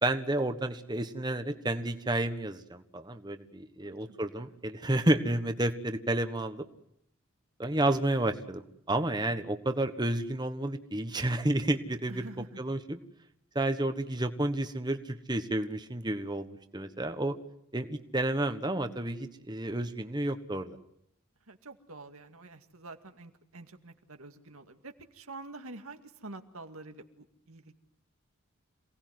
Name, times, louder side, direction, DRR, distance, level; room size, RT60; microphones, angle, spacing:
voice 1, 0.0-6.6 7.6-8.6 8.9-12.3 12.6-13.0 13.5-17.4 17.7-20.8, right 1 dB, 20° right, 7 dB, 1.3 m, -31 dB
voice 2, 3.8-4.2 12.1-12.6 21.5-27.7, right 2 dB, 85° right, 6 dB, 2.2 m, -47 dB
27.5 x 18.5 x 9.5 m, 0.74 s
head